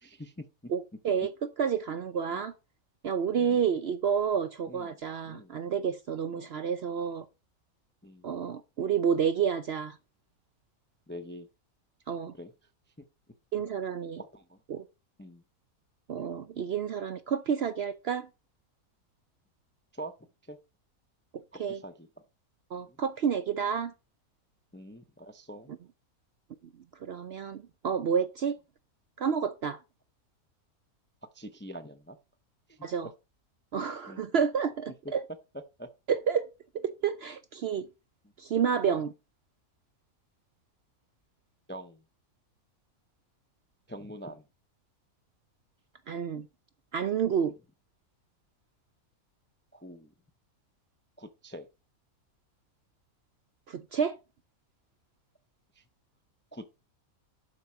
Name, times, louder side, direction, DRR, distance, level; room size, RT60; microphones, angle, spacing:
voice 1, 0.0-0.7 2.3-2.4 3.3-3.6 4.7-5.0 5.2-5.6 6.3-6.5 8.0-8.3 11.1-11.5 12.3-12.5 14.2-14.6 15.2-15.4 19.9-20.1 20.4-20.6 21.5-22.1 22.7-23.0 24.7-25.7 31.3-32.2 32.7-33.1 34.1-34.3 35.0-35.1 35.8-35.9 41.7-42.0 43.9-44.4 47.4-47.5 49.7-50.1 51.2-51.7 55.7-55.8 56.5-56.8, equal, 15° left, 0.4 m, -45 dB
voice 2, 0.7-1.3 1.6-2.5 3.0-7.3 8.2-10.0 12.1-12.3 13.5-14.2 14.7-14.8 16.1-18.3 21.6-21.8 22.7-23.9 27.0-28.6 29.2-29.8 32.8-33.1 33.7-35.2 36.1-36.5 36.7-37.9 38.4-39.1 46.1-46.5 46.9-47.5 53.7-54.2, right 7 dB, 60° right, 0.7 m, -29 dB
11.5 x 4.7 x 5.5 m
omnidirectional pair, 1.5 m